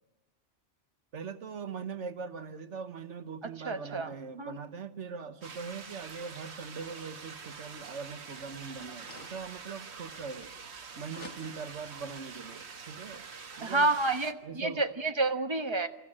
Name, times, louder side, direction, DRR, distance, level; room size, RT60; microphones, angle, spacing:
voice 1, 1.1-10.5 11.0-13.3 13.6-13.9 14.4-14.8, right 5 dB, 90° right, 1.5 m, -41 dB
voice 2, 3.6-4.6 13.6-15.9, right 2 dB, 25° right, 1.3 m, -29 dB
sound 1, 5.4-14.3, right 5 dB, 70° right, 1.5 m, -46 dB
sound 2, 8.3-10.8 11.1-11.8, left 3 dB, 80° left, 2.3 m, -53 dB
28.0 x 15.0 x 8.7 m
omnidirectional pair, 1.2 m